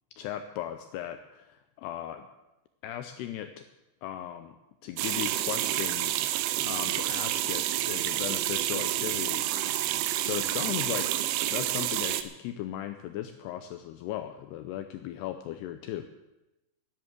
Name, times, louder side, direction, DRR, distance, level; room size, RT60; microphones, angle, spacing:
voice 1, 0.2-2.3 2.8-3.6 4.0-4.6 4.8-6.3 6.6-9.8 10.2-11.1 11.5-16.1, left 11 dB, 85° left, 8 dB, 2.4 m, -37 dB
sound 1, 5.0-12.2, right 13 dB, 90° right, 3.2 m, -29 dB
11.0 x 10.5 x 8.2 m, 0.97 s
omnidirectional pair, 5.4 m